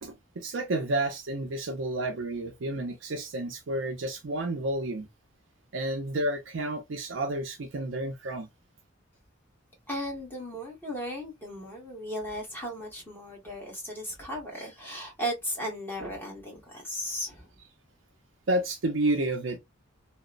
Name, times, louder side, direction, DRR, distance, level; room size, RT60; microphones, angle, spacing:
voice 1, 0.0-5.1 5.7-8.5 18.5-19.6, right 1 dB, 65° right, 0.5 m, -30 dB
voice 2, 9.9-17.5, equal, 10° left, 1.2 m, -36 dB
2.9 x 2.0 x 2.4 m
head